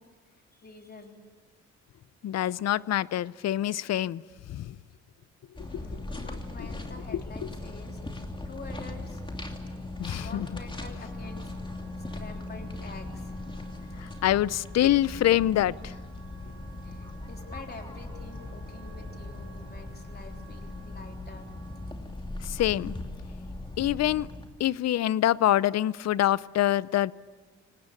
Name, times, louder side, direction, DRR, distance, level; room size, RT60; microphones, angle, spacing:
voice 1, 0.5-1.2 5.7-8.0 8.5-9.2 10.2-11.5 12.1-13.3 16.8-21.5, left 3 dB, 30° left, 3 dB, 3.6 m, -47 dB
voice 2, 2.2-4.2 4.5-4.8 5.7-5.8 6.1-6.3 7.1-7.2 10.0-10.5 14.0-15.9 22.4-23.0 23.8-24.3 24.6-27.1, left 13 dB, 60° left, 20 dB, 0.6 m, -25 dB
sound 1, 5.6-24.5, left 2 dB, 15° left, 2.8 m, -39 dB
Wind instrument woodwind instrument, 10.7-22.0, right 5 dB, 60° right, 2.9 m, -55 dB
25.0 x 18.5 x 8.5 m, 1.4 s
cardioid pair, 90°, 30 cm